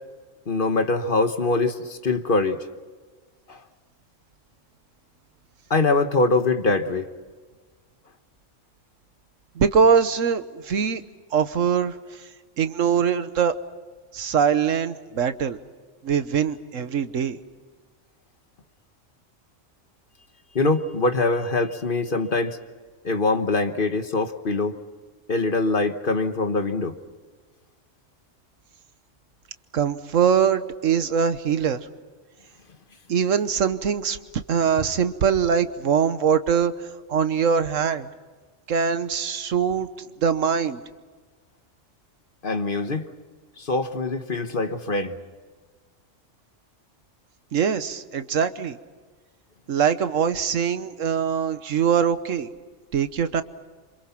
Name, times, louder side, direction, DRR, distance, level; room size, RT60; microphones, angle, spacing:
voice 1, 0.5-2.6 3.5-3.6 5.7-7.0 20.5-22.6 23.0-24.7 25.3-26.9 42.4-43.1 43.6-45.2, left 3 dB, 45° left, 1.4 m, -23 dB
voice 2, 9.6-11.0 11.3-11.9 12.6-13.5 14.1-15.6 16.0-17.4 29.7-31.9 33.1-36.7 37.1-38.1 38.7-40.8 47.5-48.8 49.7-52.5 52.9-53.4, right 7 dB, 80° right, 1.4 m, -22 dB
28.0 x 26.5 x 5.9 m
omnidirectional pair, 1.3 m